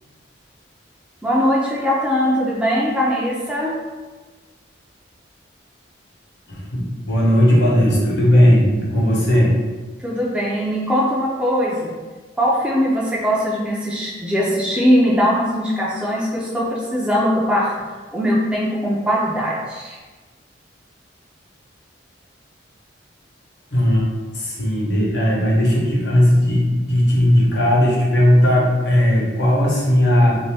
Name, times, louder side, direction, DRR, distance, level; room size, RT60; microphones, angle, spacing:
voice 1, 1.2-3.7 10.0-11.9 12.4-17.7 18.1-20.0, equal, 5° right, -6 dB, 0.4 m, -20 dB
voice 2, 6.5-9.5 23.7-24.1 24.3-30.4, equal, 65° left, -5 dB, 0.9 m, -16 dB
2.6 x 2.5 x 3.3 m, 1.3 s
head